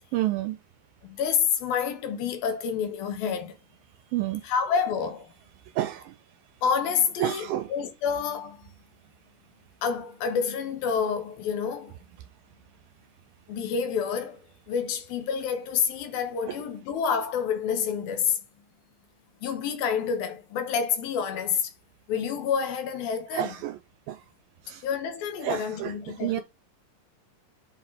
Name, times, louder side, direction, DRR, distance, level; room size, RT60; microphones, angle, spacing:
voice 1, 0.1-0.6 4.1-4.4 5.8-6.1 7.2-7.7 23.3-23.8 24.1-24.2 24.7-24.8 25.4-26.4, right 13 dB, 80° right, 2.1 m, -29 dB
voice 2, 1.0-3.6 4.4-5.3 6.6-8.7 9.8-11.9 13.5-18.4 19.4-21.7 22.1-23.5 24.8-26.4, left 7 dB, 75° left, 2.9 m, -28 dB
8.9 x 3.7 x 4.6 m
omnidirectional pair, 4.5 m